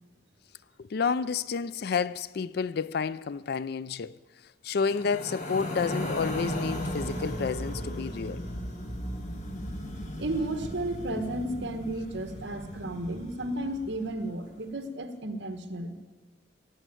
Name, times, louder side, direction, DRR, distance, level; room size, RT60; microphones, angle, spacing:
voice 1, 0.8-4.1 4.6-8.5, left 5 dB, 55° left, 0.4 m, -30 dB
sound 1, 4.8-14.1, equal, 40° left, 1.6 m, -36 dB
voice 2, 10.2-16.0, right 1 dB, 60° right, 1.4 m, -33 dB
17.0 x 7.9 x 9.1 m
head